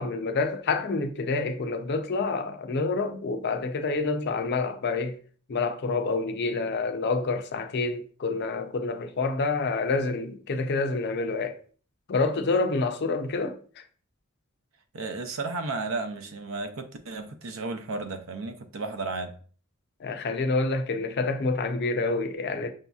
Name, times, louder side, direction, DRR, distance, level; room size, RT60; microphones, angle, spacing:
voice 1, 0.0-5.2 5.5-11.6 12.1-13.8 20.0-22.7, left 3 dB, 50° left, 0.5 m, -28 dB
voice 2, 14.9-19.4, right 3 dB, 65° right, 0.6 m, -33 dB
6.1 x 2.7 x 2.3 m
head